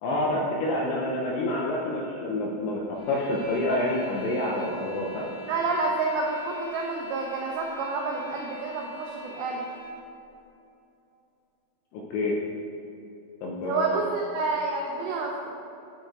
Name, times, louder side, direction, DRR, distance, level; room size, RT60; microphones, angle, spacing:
voice 1, 0.0-5.3 11.9-12.4 13.4-14.1, left 1 dB, 80° left, -3 dB, 2.6 m, -28 dB
sound 1, 2.9-10.0, left 1 dB, 55° left, 2.9 m, -44 dB
voice 2, 5.5-9.6 13.6-15.3, right 3 dB, 85° right, -1 dB, 2.4 m, -29 dB
9.3 x 4.7 x 4.6 m, 2.8 s
omnidirectional pair, 5.8 m